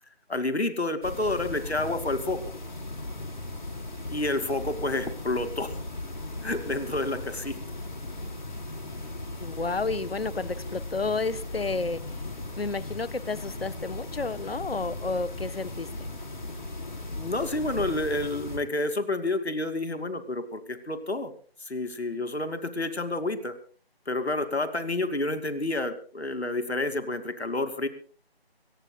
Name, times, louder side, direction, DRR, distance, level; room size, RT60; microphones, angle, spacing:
voice 1, 0.3-2.4 4.1-5.7 6.4-7.6 17.1-21.3 21.7-23.5 24.1-27.9, left 2 dB, 85° left, 10 dB, 2.6 m, -29 dB
sound 1, 1.0-18.6, left 2 dB, 45° left, 4.6 m, -37 dB
voice 2, 9.4-12.2 12.6-15.9, left 4 dB, 70° left, 16 dB, 1.1 m, -31 dB
25.5 x 19.0 x 2.3 m, 0.39 s
figure-of-eight pair, 175°, 31 cm